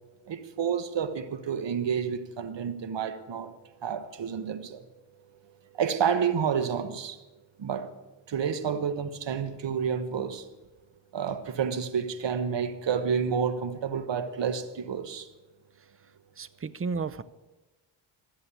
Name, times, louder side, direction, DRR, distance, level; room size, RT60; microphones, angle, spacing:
voice 1, 0.3-3.5 3.8-4.8 5.8-7.2 7.6-7.9 8.3-10.4 11.1-15.3, right 7 dB, 60° right, 1.4 m, -29 dB
voice 2, 16.4-17.2, right 4 dB, 25° right, 0.7 m, -33 dB
14.0 x 7.6 x 8.4 m
cardioid pair, 80°, 49 cm